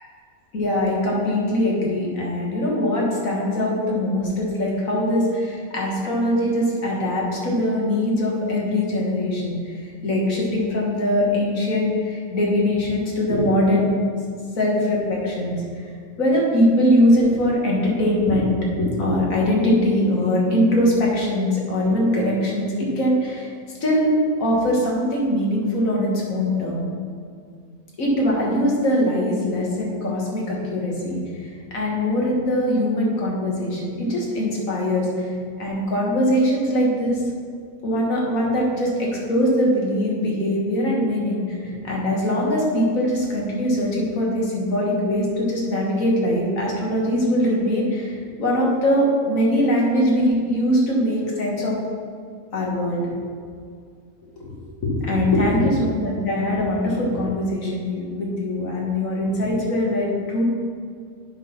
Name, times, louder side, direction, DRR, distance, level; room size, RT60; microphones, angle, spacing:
voice 1, 0.5-13.9 14.6-15.8 16.2-23.5 23.8-24.1 24.4-26.9 28.0-37.2 37.8-51.8 52.5-53.2 54.4-54.5 54.8-60.4, left 1 dB, 60° left, -3 dB, 1.9 m, -22 dB
8.1 x 4.1 x 5.7 m, 2.2 s
omnidirectional pair, 1.6 m